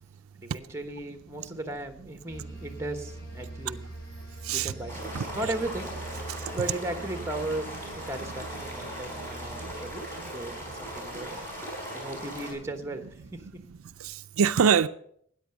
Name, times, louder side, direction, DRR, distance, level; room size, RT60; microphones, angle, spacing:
voice 1, 0.4-3.8 4.5-5.9 6.5-11.4 11.9-13.6, right 2 dB, 15° right, 1.1 m, -36 dB
sound 1, 2.3-11.7, right 2 dB, 50° left, 4.9 m, -44 dB
voice 2, 4.4-4.7 5.1-5.3 6.3-6.6 9.5-9.7 14.0-14.9, right 7 dB, 80° right, 0.4 m, -25 dB
sound 2, 4.9-12.5, equal, 10° left, 4.2 m, -39 dB
13.5 x 9.6 x 6.0 m
head